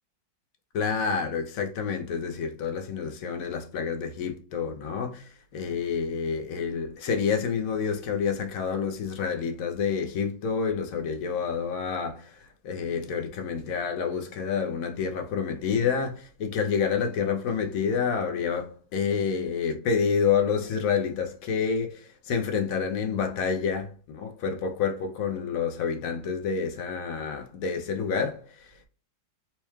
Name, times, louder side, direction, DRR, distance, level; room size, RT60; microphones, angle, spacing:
voice 1, 0.7-28.9, left 6 dB, 65° left, 0.9 m, -28 dB
4.3 x 2.3 x 3.0 m
omnidirectional pair, 1.9 m